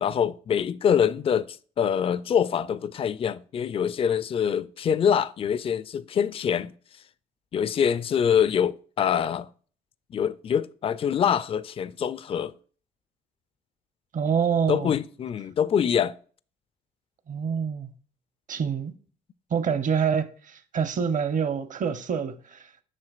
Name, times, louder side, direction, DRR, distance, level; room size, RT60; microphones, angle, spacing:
voice 1, 0.0-6.7 7.5-9.5 10.1-12.5 14.7-16.1, left 8 dB, 30° left, 0.3 m, -25 dB
voice 2, 14.1-14.9 17.3-17.9 18.5-18.9 19.5-22.7, right 6 dB, 45° right, 0.8 m, -26 dB
7.6 x 5.7 x 2.4 m
supercardioid pair, 70°, 18 cm